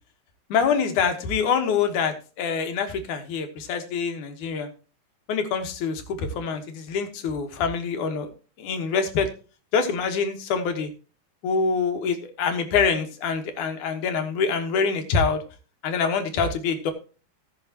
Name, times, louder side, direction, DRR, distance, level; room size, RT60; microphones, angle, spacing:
voice 1, 0.5-4.7 5.3-8.3 8.6-9.3 9.7-10.9 11.4-15.4 15.8-16.9, left 5 dB, 80° left, 6 dB, 2.9 m, -25 dB
17.5 x 6.3 x 2.9 m, 0.35 s
omnidirectional pair, 3.5 m